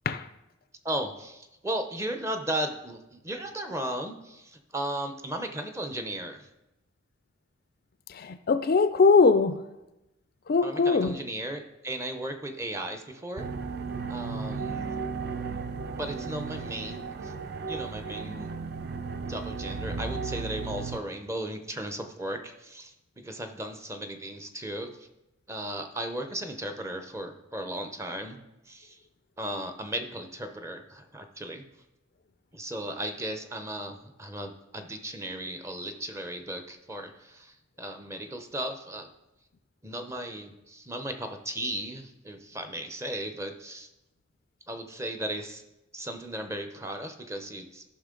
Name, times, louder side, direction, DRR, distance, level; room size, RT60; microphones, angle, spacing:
voice 1, 0.8-6.5 10.6-13.5 14.1-14.9 15.9-17.3 17.7-18.6 19.3-24.9 25.5-28.4 28.7-29.0 29.4-31.6 32.5-39.1 39.8-43.9 44.7-45.6 45.9-47.8, right 1 dB, 15° right, 0.7 m, -36 dB
voice 2, 8.1-9.6 10.5-11.2, left 4 dB, 45° left, 0.4 m, -21 dB
sound 1, 13.4-21.0, right 4 dB, 50° right, 0.5 m, -35 dB
13.5 x 5.8 x 3.8 m
head